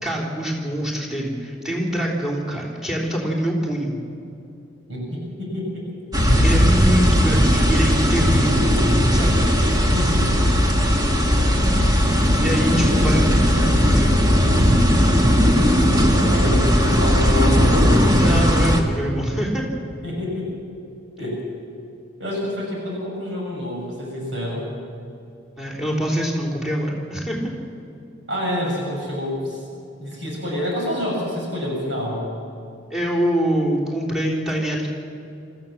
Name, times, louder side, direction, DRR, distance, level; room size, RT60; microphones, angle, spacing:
voice 1, 0.0-4.0 6.4-8.8 9.1-9.5 12.4-14.3 18.2-19.7 25.6-27.5 32.9-34.9, equal, 5° right, -1 dB, 3.5 m, -24 dB
voice 2, 4.9-5.8 9.9-10.4 15.8-18.2 20.0-20.5 21.2-21.4 22.2-24.7 28.3-29.6 30.0-32.3, left 1 dB, 70° right, -2 dB, 6.2 m, -27 dB
sound 1, 6.1-18.8, equal, 20° right, 1.8 m, -17 dB
24.5 x 14.5 x 7.3 m, 2.7 s
head